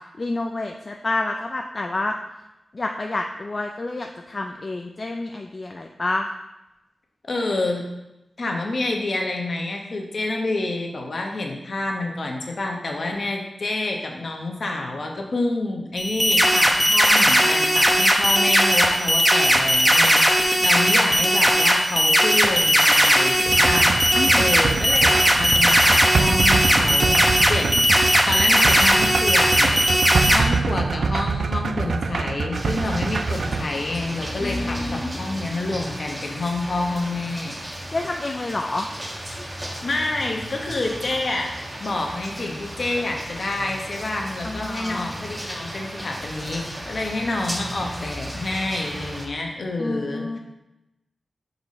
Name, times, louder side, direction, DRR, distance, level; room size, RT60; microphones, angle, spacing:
voice 1, 0.2-2.1 2.7-6.3 24.1-24.6 34.4-35.2 37.9-38.9 44.4-45.1 49.8-50.4, left 2 dB, 35° left, 3 dB, 0.4 m, -28 dB
voice 2, 7.3-7.8 8.4-23.9 24.3-27.2 27.5-27.9 28.3-37.6 39.8-41.5 41.8-50.4, left 2 dB, 55° left, 1 dB, 1.0 m, -28 dB
sound 1, 16.0-30.4, equal, 5° right, 0.8 m, -18 dB
sound 2, 23.5-33.7, right 4 dB, 70° right, 0.3 m, -25 dB
sound 3, 32.5-49.3, equal, 25° right, 1.3 m, -34 dB
6.9 x 4.0 x 4.1 m, 0.94 s
wide cardioid pair, 95°, 0 cm